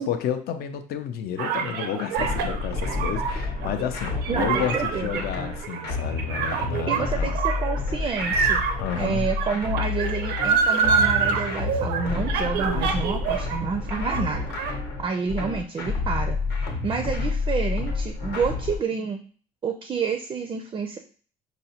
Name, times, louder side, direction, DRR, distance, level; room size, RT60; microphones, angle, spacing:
voice 1, 0.0-7.4 8.8-9.3, left 9 dB, 70° left, 8 dB, 0.5 m, -31 dB
sound 1, 1.4-13.6 13.9-14.7, right 6 dB, 80° right, 0.5 m, -26 dB
sound 2, 2.2-18.8, left 4 dB, 90° left, 0.9 m, -29 dB
voice 2, 4.3-5.2 6.9-8.6 9.0-14.5 15.0-16.4 16.8-19.2 19.6-21.0, right 5 dB, 30° right, 5 dB, 0.4 m, -29 dB
4.7 x 2.1 x 2.8 m, 0.42 s
cardioid pair, 110°, 17 cm